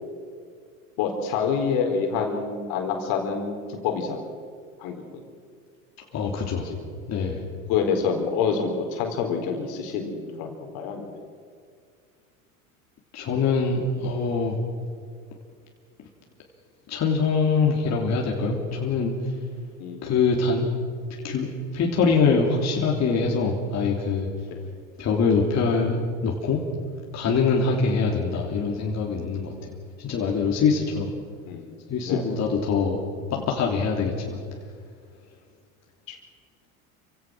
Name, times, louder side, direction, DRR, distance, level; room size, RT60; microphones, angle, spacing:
voice 1, 1.0-4.2 4.8-5.2 6.6-6.8 7.7-11.1 19.8-20.1 27.7-27.8 31.5-31.7 32.0-32.2 36.1-36.2, left 6 dB, 60° left, 3 dB, 4.3 m, -27 dB
voice 2, 6.1-6.7 7.1-7.4 13.1-14.6 16.9-19.3 20.0-20.7 21.2-24.3 25.0-26.6 27.1-29.7 30.0-31.1 31.9-33.0 33.3-34.4, left 4 dB, 40° left, -1 dB, 3.5 m, -24 dB
28.5 x 16.5 x 6.4 m, 2.1 s
hypercardioid pair, 85°, 41 cm